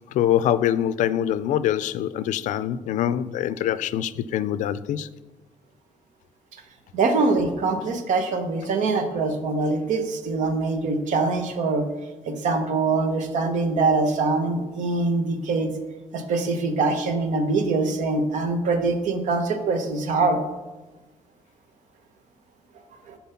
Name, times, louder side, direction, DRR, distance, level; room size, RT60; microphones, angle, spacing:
voice 1, 0.1-5.1, left 11 dB, 80° left, 0.4 m, -24 dB
voice 2, 6.9-11.8 12.3-15.7 16.1-20.4 23.1-23.2, right 3 dB, 80° right, 1.0 m, -23 dB
9.2 x 4.4 x 5.7 m
cardioid pair, 180°, 13 cm